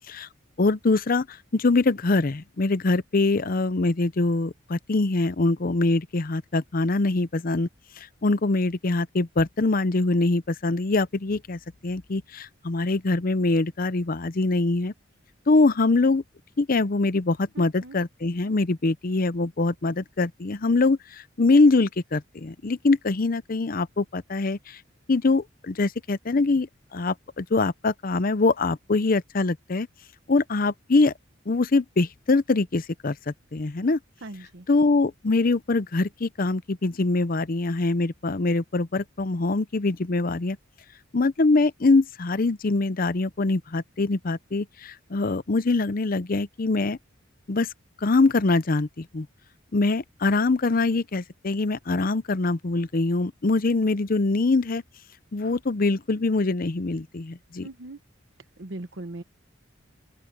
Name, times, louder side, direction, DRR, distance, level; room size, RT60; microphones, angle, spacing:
voice 1, 0.6-7.7 8.0-14.9 15.5-16.2 16.6-24.8 25.1-29.9 30.3-31.1 31.5-34.0 34.7-40.6 41.1-47.0 47.5-47.7 48.0-49.3 49.7-54.8 55.3-57.7, left 3 dB, 45° left, 0.6 m, -23 dB
voice 2, 17.5-18.0 34.2-34.7 57.6-58.0 58.6-59.2, right 2 dB, 65° right, 1.1 m, -39 dB
open air
head